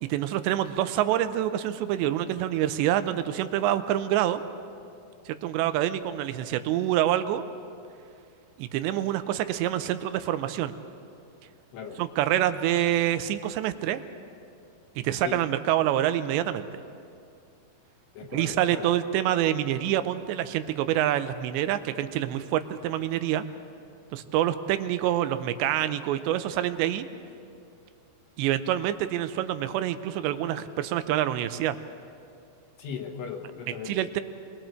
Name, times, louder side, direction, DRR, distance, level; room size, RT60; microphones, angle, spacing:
voice 1, 0.0-4.4 5.3-7.4 8.6-10.7 12.0-14.0 15.0-16.8 18.3-23.4 24.1-27.1 28.4-31.8 33.9-34.2, right 12 dB, 90° right, 11 dB, 3.0 m, -26 dB
voice 2, 18.1-18.9 32.8-34.1, left 7 dB, 75° left, 2 dB, 3.1 m, -38 dB
29.5 x 22.0 x 4.5 m, 2.5 s
omnidirectional pair, 4.9 m